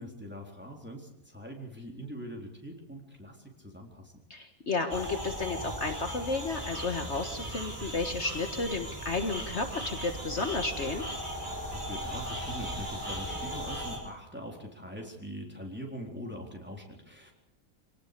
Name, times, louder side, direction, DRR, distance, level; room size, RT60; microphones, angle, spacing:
voice 1, 0.0-4.1 11.6-17.3, equal, 5° right, 0 dB, 3.9 m, -42 dB
voice 2, 4.3-11.0, left 3 dB, 50° left, 5 dB, 1.9 m, -32 dB
sound 1, 4.9-14.0, equal, 35° right, 5.8 m, -37 dB
26.0 x 18.5 x 6.9 m, 0.78 s
omnidirectional pair, 1.5 m